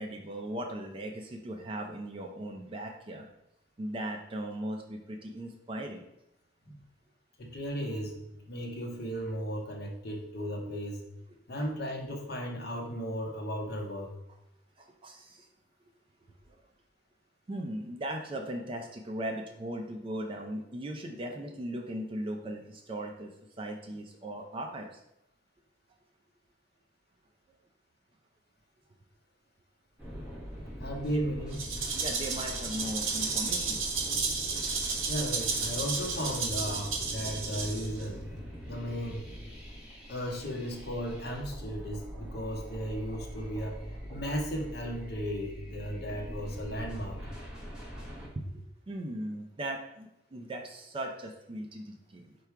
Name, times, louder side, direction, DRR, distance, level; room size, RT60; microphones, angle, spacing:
voice 1, 0.0-3.3 3.8-6.1 11.6-11.7 14.8-15.5 17.5-25.0 31.1-31.2 31.9-33.8 34.2-34.6 48.2-48.4 48.9-52.4, right 1 dB, 25° right, 2 dB, 0.3 m, -38 dB
voice 2, 7.4-8.2 8.5-11.0 11.5-14.1 30.8-31.9 35.1-38.3 38.7-39.2 40.1-43.8 44.1-47.3, equal, 50° left, 0 dB, 0.8 m, -35 dB
sound 1, 30.0-48.3, equal, 5° right, 1.1 m, -43 dB
Rattle (instrument), 31.5-38.0, right 4 dB, 75° right, 0.8 m, -32 dB
4.6 x 2.3 x 4.5 m, 0.82 s
head